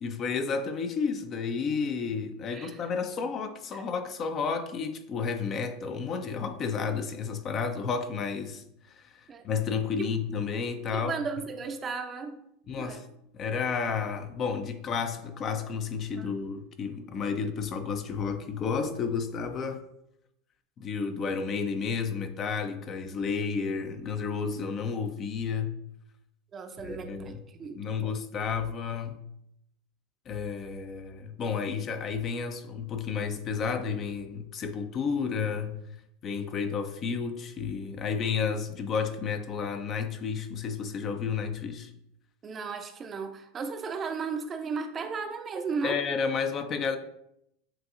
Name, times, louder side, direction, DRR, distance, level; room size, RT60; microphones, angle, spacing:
voice 1, 0.0-8.6 9.0-9.1 9.4-11.1 12.7-13.0 13.3-19.8 20.8-25.7 26.8-27.4 27.8-29.2 30.3-35.8 36.2-41.9 45.8-47.0, left 5 dB, 40° left, 0.5 m, -31 dB
voice 2, 2.5-2.8 3.7-3.8 9.3-9.4 10.9-12.4 12.8-13.0 16.1-16.3 26.5-28.1 42.4-46.0, right 5 dB, 30° right, 0.5 m, -35 dB
7.4 x 2.6 x 2.5 m
hypercardioid pair, 90°, 0 cm